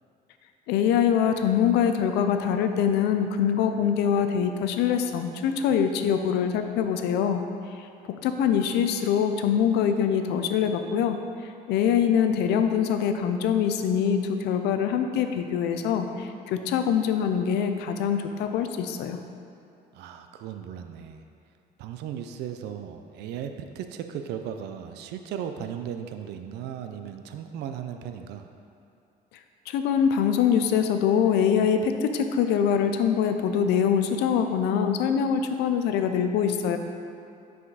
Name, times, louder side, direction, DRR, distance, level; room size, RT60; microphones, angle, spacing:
voice 1, 0.7-7.4 8.2-11.2 11.7-19.2 29.7-36.8, left 8 dB, 85° left, 7 dB, 0.5 m, -24 dB
voice 2, 19.9-21.2 21.8-28.5, right 9 dB, 80° right, 7 dB, 0.5 m, -36 dB
5.8 x 5.0 x 4.0 m, 2.7 s
cardioid pair, 110°, 17 cm